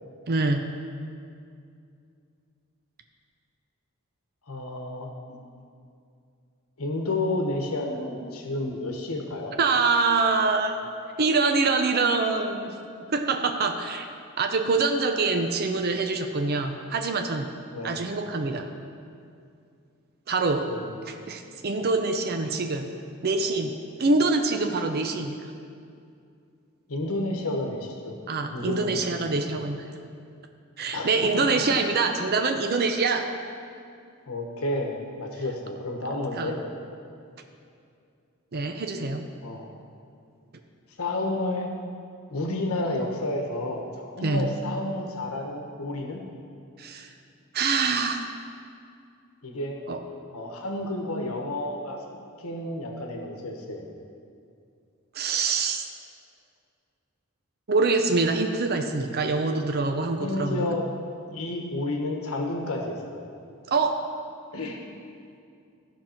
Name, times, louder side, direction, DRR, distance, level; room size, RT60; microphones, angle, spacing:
voice 1, 0.3-0.6 9.6-10.9 11.2-12.7 13.1-14.1 14.4-17.5 17.8-18.7 20.3-20.7 21.0-22.9 23.2-25.4 28.3-29.8 30.8-33.3 36.4-36.6 38.5-39.2 44.2-44.5 46.8-47.1 47.5-48.3 49.9-50.0 55.1-55.9 57.7-60.7 63.7-64.1, right 3 dB, 45° right, 5 dB, 0.6 m, -25 dB
voice 2, 4.5-5.4 6.8-9.5 17.7-18.0 20.7-20.9 26.9-28.2 28.5-29.4 30.9-31.6 34.3-36.6 39.4-39.7 41.0-41.7 42.3-46.2 49.4-49.8 50.3-52.0 52.4-53.9 60.2-60.9 61.3-63.3 64.5-64.8, left 2 dB, 90° left, 2 dB, 1.1 m, -31 dB
14.5 x 6.0 x 4.4 m, 2.4 s
head